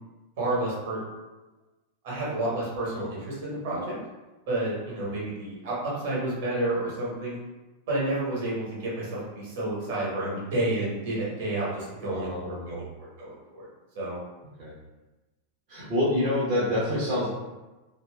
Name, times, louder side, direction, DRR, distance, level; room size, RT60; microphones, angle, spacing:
voice 1, 0.4-1.0 2.0-4.0 4.5-7.4 7.9-12.9 13.2-13.6 13.9-14.2, right 2 dB, 55° right, -6 dB, 1.2 m, -30 dB
voice 2, 12.1-12.9 14.6-14.7 15.7-17.3, left 1 dB, 35° right, -9 dB, 0.8 m, -27 dB
2.9 x 2.7 x 2.2 m, 1.1 s
figure-of-eight pair, 90°, 0 cm